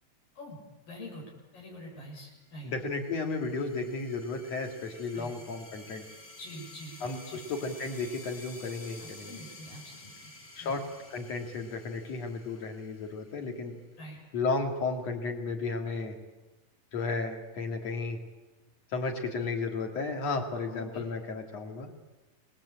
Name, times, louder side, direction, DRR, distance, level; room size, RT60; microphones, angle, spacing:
voice 1, 0.9-2.7 5.1-5.3 6.4-7.0 7.3-7.5 9.0-10.3 10.6-10.7 14.0-14.2 20.7-21.1, equal, 75° left, -2 dB, 8.9 m, -45 dB
voice 2, 2.6-6.1 7.0-9.4 10.6-10.8 11.1-13.8 14.3-16.2 16.9-18.2 18.9-21.9, left 3 dB, 50° left, 3 dB, 3.7 m, -33 dB
sound 1, 2.6-13.8, left 1 dB, 20° left, 3.1 m, -51 dB
29.0 x 20.5 x 8.7 m, 1.1 s
omnidirectional pair, 4.0 m